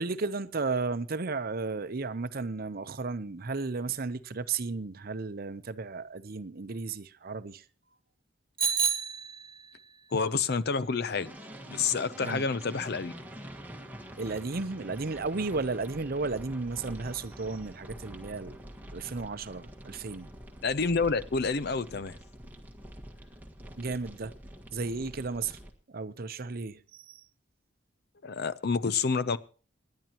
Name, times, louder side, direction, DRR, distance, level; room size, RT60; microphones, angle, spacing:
voice 1, 0.0-7.6 12.2-12.5 14.2-18.6 18.9-20.3 23.8-24.3 24.7-25.6 25.9-27.2, right 4 dB, 55° right, 0.7 m, -34 dB
Bicycle bell, 8.6-9.8, right 6 dB, 30° right, 2.1 m, -29 dB
voice 2, 10.1-11.3 11.7-13.1 20.6-22.2 28.2-29.4, left 4 dB, 60° left, 0.7 m, -28 dB
sound 1, 11.2-25.7, equal, 10° right, 1.7 m, -46 dB
27.0 x 10.5 x 3.0 m
head